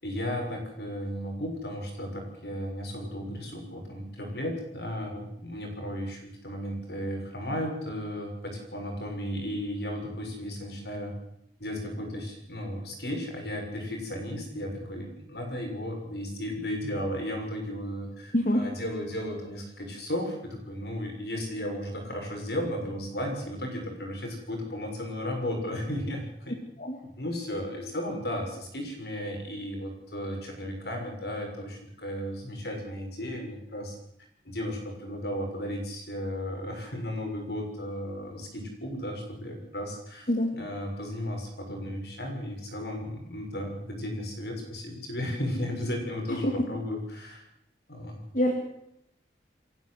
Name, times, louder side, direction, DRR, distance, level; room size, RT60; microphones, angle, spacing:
voice 1, 0.0-11.1 11.6-26.5 27.2-34.0 34.4-47.4 47.9-48.2, equal, 70° left, 2 dB, 6.7 m, -34 dB
voice 2, 18.3-18.6 26.8-27.0 40.3-40.5 46.3-46.5 48.3-48.5, equal, 45° left, 1 dB, 2.5 m, -25 dB
28.5 x 11.5 x 8.1 m, 0.77 s
head